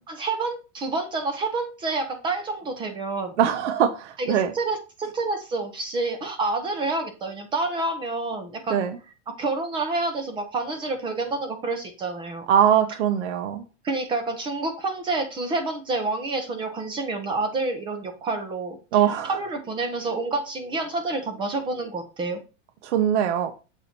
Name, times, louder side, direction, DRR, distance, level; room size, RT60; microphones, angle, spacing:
voice 1, 0.1-3.4 4.2-8.9 9.3-12.5 13.8-18.8 19.1-22.4, right 3 dB, 15° right, 6 dB, 0.5 m, -28 dB
voice 2, 3.4-4.5 8.7-9.0 12.5-13.6 18.9-19.4 22.8-23.5, right 9 dB, 65° right, 8 dB, 0.9 m, -22 dB
7.2 x 4.0 x 4.3 m, 0.31 s
supercardioid pair, 165°, 38 cm